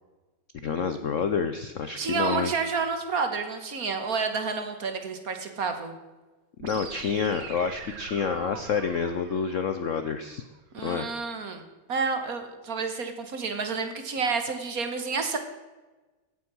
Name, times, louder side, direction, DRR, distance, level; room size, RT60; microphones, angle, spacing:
voice 1, 0.6-2.5 6.6-10.4 10.8-11.1, left 6 dB, 85° left, 9 dB, 0.6 m, -28 dB
voice 2, 2.0-6.0 10.7-11.6 11.9-15.4, right 5 dB, 45° right, 7 dB, 1.6 m, -29 dB
sound 1, 6.6-10.6, right 6 dB, 85° right, 2.1 m, -43 dB
16.0 x 8.5 x 6.1 m, 1.2 s
omnidirectional pair, 2.4 m